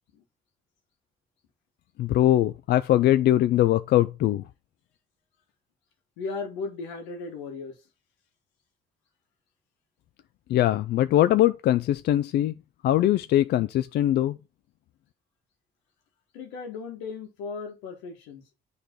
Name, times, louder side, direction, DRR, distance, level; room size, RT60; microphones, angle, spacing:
voice 1, 2.0-4.4 10.5-12.5 12.8-14.3, left 13 dB, 65° left, 0.4 m, -21 dB
voice 2, 6.2-7.8 16.3-18.4, left 4 dB, 90° left, 1.5 m, -36 dB
9.3 x 3.4 x 4.4 m
supercardioid pair, 65°, 18 cm